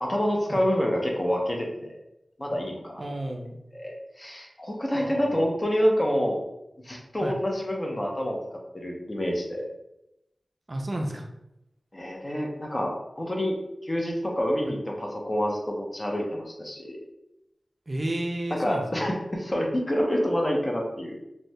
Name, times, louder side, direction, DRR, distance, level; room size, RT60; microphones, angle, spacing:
voice 1, 0.0-2.0 2.4-3.0 3.7-6.4 6.8-8.4 8.7-9.7 11.9-13.6 13.8-17.0 18.6-21.2, equal, 30° left, 0 dB, 0.6 m, -27 dB
voice 2, 3.0-3.6 4.9-5.5 7.2-7.4 10.7-11.3 14.6-14.7 17.9-19.1, right 1 dB, 35° right, 2 dB, 0.3 m, -32 dB
3.0 x 2.1 x 2.6 m, 0.86 s
wide cardioid pair, 90°, 0 cm